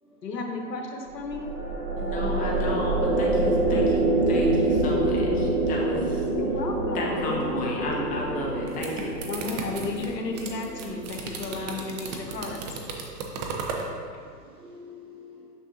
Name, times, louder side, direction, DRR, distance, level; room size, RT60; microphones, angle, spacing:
voice 1, 0.2-1.5 6.4-7.9 9.3-12.8, left 3 dB, 75° left, 2 dB, 1.1 m, -34 dB
sound 1, 1.1-12.5, right 2 dB, 45° right, 1.1 m, -26 dB
voice 2, 2.0-6.2 6.9-9.2, left 2 dB, 15° left, -3 dB, 0.8 m, -33 dB
sound 2, 8.5-13.9, right 4 dB, 25° right, 0.5 m, -35 dB
voice 3, 13.8-15.5, left 4 dB, 10° right, -7 dB, 1.5 m, -49 dB
6.3 x 6.3 x 2.7 m, 2.2 s
figure-of-eight pair, 115°, 50 cm